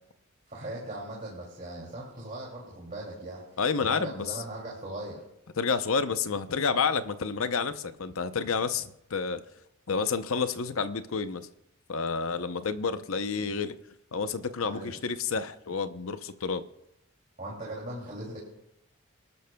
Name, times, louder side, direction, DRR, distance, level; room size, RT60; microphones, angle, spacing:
voice 1, 0.5-3.4 3.8-5.2 14.6-14.9 17.4-18.4, right 1 dB, 35° right, 2.7 m, -39 dB
voice 2, 3.6-4.4 5.6-9.4 9.9-11.5 11.9-13.8 14.1-16.6, left 5 dB, 70° left, 0.7 m, -29 dB
26.0 x 12.5 x 2.3 m
head